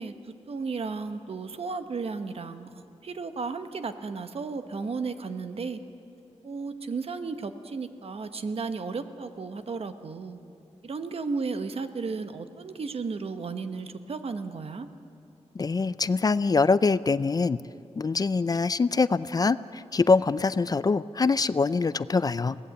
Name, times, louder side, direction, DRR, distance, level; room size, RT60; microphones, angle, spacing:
voice 1, 0.0-2.7 3.0-5.8 6.4-10.4 10.8-14.9, right 4 dB, 60° right, 9 dB, 1.1 m, -34 dB
voice 2, 15.6-17.6 18.0-22.6, left 4 dB, 35° left, 16 dB, 0.4 m, -24 dB
22.0 x 17.0 x 7.8 m, 2.6 s
wide cardioid pair, 105°, 11 cm